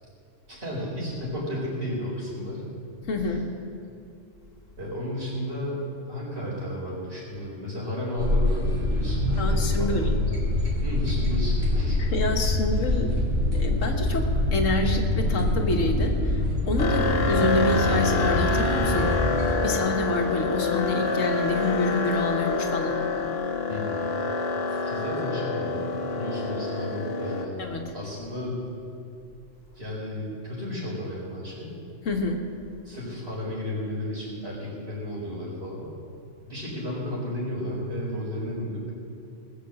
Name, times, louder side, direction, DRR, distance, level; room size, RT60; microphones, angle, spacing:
voice 1, 0.5-2.7 3.2-3.4 4.8-10.2 10.8-12.0 16.9-17.1 23.7-24.0 24.8-27.6 27.9-28.6 29.7-31.7 32.8-35.9 36.5-38.9, left 1 dB, 55° right, -4 dB, 4.6 m, -33 dB
voice 2, 3.1-3.4 9.4-10.1 12.0-13.1 13.5-19.1 19.6-23.0 27.6-27.8 32.1-32.4, left 2 dB, 85° left, 3 dB, 1.8 m, -27 dB
sound 1, 8.2-19.5, left 1 dB, 90° right, 3.2 m, -25 dB
sound 2, 16.8-27.5, left 3 dB, 55° left, 1.2 m, -27 dB
20.0 x 6.8 x 7.5 m, 2.6 s
omnidirectional pair, 1.3 m